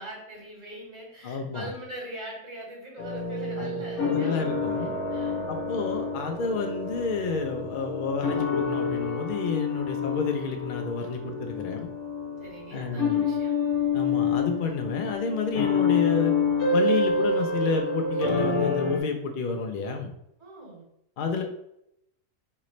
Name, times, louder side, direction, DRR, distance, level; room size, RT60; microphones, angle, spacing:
voice 1, 0.0-4.8 5.1-5.5 12.4-13.5 20.4-20.8 21.3-21.4, right 1 dB, 55° right, -3 dB, 1.7 m, -42 dB
voice 2, 1.2-1.7 3.6-3.7 4.0-4.9 5.5-11.9 12.7-13.2 13.9-16.3 16.7-20.1 21.2-21.4, left 4 dB, 80° left, 4 dB, 0.4 m, -30 dB
sound 1, 3.0-19.0, left 4 dB, 60° left, 1.1 m, -28 dB
3.9 x 3.3 x 3.1 m, 0.80 s
omnidirectional pair, 1.5 m